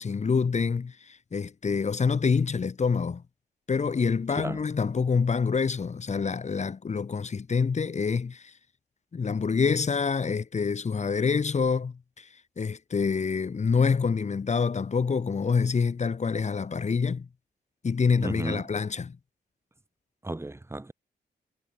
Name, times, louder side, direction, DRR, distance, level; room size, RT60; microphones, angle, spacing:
voice 1, 0.0-3.2 3.7-8.5 9.1-17.3 17.8-19.2, left 5 dB, 40° left, 2.9 m, -26 dB
voice 2, 4.3-4.6 18.2-18.7 20.2-20.9, right 2 dB, 15° right, 3.9 m, -34 dB
cardioid pair, 100°, 17 cm